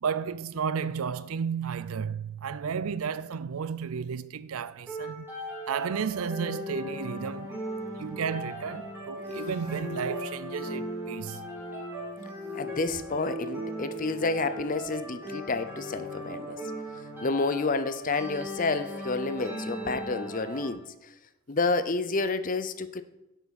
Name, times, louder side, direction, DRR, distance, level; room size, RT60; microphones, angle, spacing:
voice 1, 0.0-5.3 5.7-7.6 7.9-11.4, right 6 dB, 75° right, 0.5 m, -33 dB
sound 1, 4.9-20.7, equal, 10° right, 3.4 m, -38 dB
voice 2, 12.5-16.6 17.2-20.8 21.5-23.0, left 3 dB, 40° left, 0.6 m, -29 dB
10.5 x 8.1 x 4.2 m
head